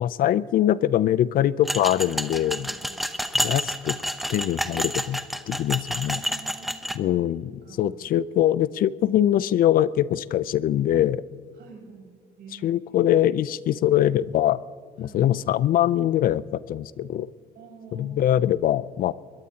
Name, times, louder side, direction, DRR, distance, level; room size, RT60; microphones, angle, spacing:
voice 1, 0.0-2.7 3.4-4.0 4.3-5.2 5.5-6.2 7.0-7.5 7.8-11.2 12.6-14.6 15.0-17.3 17.9-19.1, left 12 dB, 55° left, 18 dB, 0.5 m, -23 dB
sound 1, 1.7-7.0, equal, ahead, 0.8 m, -29 dB
voice 2, 2.3-3.0 6.1-7.2 7.6-8.0 11.6-12.1 12.4-13.1 15.0-15.2 17.5-18.5, right 5 dB, 75° right, 1 dB, 5.6 m, -47 dB
22.5 x 21.5 x 2.9 m, 2.1 s
cardioid pair, 110°, 17 cm